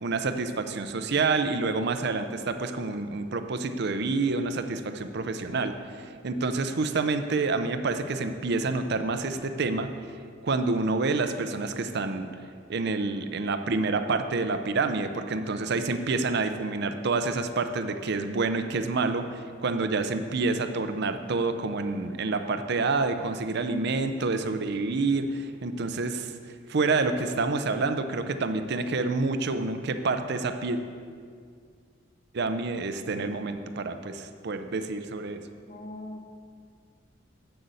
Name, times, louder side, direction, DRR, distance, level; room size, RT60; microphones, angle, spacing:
voice 1, 0.0-10.1 10.4-30.8 32.3-35.4, right 3 dB, 60° right, 8 dB, 0.6 m, -28 dB
voice 2, 35.7-36.3, left 1 dB, 45° left, 2 dB, 1.1 m, -40 dB
8.0 x 6.8 x 7.7 m, 2.1 s
head